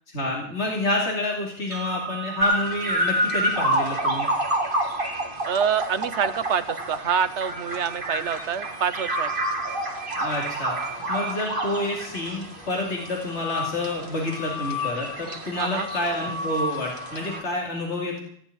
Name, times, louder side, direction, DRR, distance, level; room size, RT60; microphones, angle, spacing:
voice 1, 0.1-4.3 10.2-18.2, left 2 dB, 75° left, -2 dB, 3.1 m, -29 dB
sound 1, 1.7-9.7, right 10 dB, 15° left, 4.2 m, -42 dB
sound 2, 2.4-17.4, right 1 dB, 50° right, 2.2 m, -28 dB
voice 2, 5.5-9.3 15.5-15.9, right 7 dB, 75° right, 12 dB, 1.2 m, -26 dB
17.0 x 6.3 x 9.9 m, 0.64 s
omnidirectional pair, 1.2 m